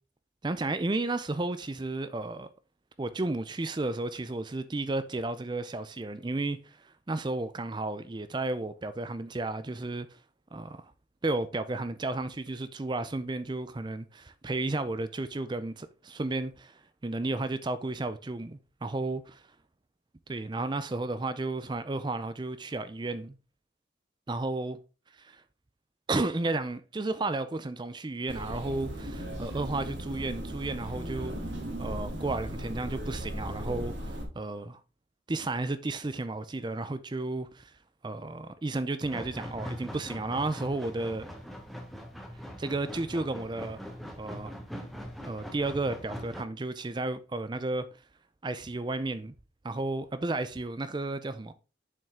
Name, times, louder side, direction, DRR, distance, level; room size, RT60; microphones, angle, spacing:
voice 1, 0.4-2.5 3.0-10.2 10.5-10.9 11.2-19.4 20.3-23.4 24.3-24.8 25.2-25.4 26.1-31.4 31.8-34.8 35.3-37.7 38.0-41.3 42.6-43.8 44.2-44.5 45.2-47.9 48.4-49.3 49.6-51.5, right 2 dB, 25° right, 0.4 m, -33 dB
sound 1, 28.3-34.2, equal, 85° right, 2.7 m, -37 dB
sound 2, 39.0-46.4, equal, ahead, 1.1 m, -42 dB
7.3 x 5.5 x 3.6 m
head